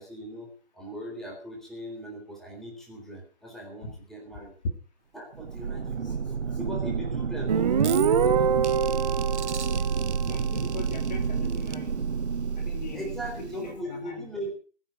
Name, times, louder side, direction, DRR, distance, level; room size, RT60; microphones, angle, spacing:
voice 1, 0.0-4.5 5.1-8.5 12.9-14.5, right 1 dB, ahead, -1 dB, 3.8 m, -39 dB
sound 1, 5.3-13.8, right 6 dB, 80° right, 0.7 m, -29 dB
Guitar, 7.5-11.0, right 7 dB, 35° right, 1.0 m, -26 dB
voice 2, 10.3-12.0 12.6-14.3, left 4 dB, 40° left, 4 dB, 3.0 m, -41 dB
20.5 x 9.2 x 6.1 m, 0.41 s
figure-of-eight pair, 145°, 34 cm